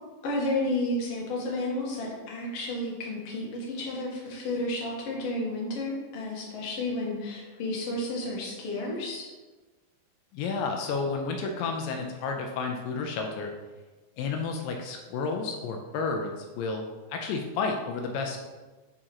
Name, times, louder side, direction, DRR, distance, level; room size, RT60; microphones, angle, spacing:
voice 1, 0.2-9.3, left 1 dB, 65° left, -3 dB, 1.6 m, -31 dB
voice 2, 10.3-13.5 14.2-16.8 17.1-18.4, left 4 dB, 80° left, 3 dB, 2.1 m, -31 dB
8.7 x 4.3 x 2.9 m, 1.3 s
omnidirectional pair, 4.3 m